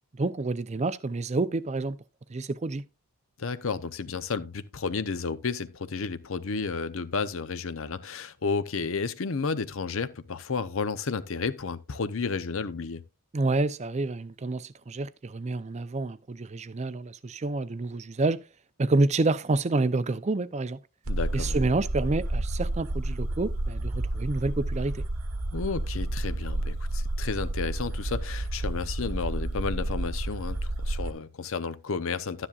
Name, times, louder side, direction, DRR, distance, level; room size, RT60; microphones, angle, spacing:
voice 1, 0.1-2.0 2.3-2.8 13.3-18.4 18.8-20.8 21.3-25.0, right 2 dB, 30° right, 0.5 m, -28 dB
voice 2, 3.4-13.0 21.1-21.6 25.5-32.5, left 4 dB, 65° left, 0.7 m, -32 dB
sound 1, 21.1-31.1, right 1 dB, 75° right, 1.1 m, -30 dB
12.0 x 9.9 x 2.4 m
head